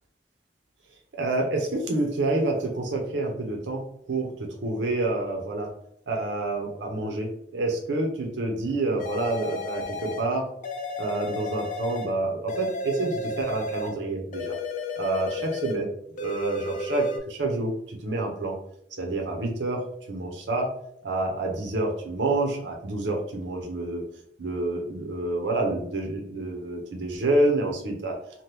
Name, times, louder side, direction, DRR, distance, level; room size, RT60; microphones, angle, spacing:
voice 1, 1.2-3.8 4.1-4.3 4.6-5.7 6.1-10.4 11.0-14.5 15.0-15.9 16.2-18.5 19.0-19.8 20.1-20.7 21.0-24.0 24.4-28.1, right 2 dB, 90° right, 1 dB, 0.7 m, -28 dB
sound 1, 9.0-10.3 10.6-12.1 12.5-14.0 14.3-15.8 16.2-17.2, left 2 dB, 45° left, 0.4 m, -33 dB
2.8 x 2.2 x 3.3 m, 0.70 s
head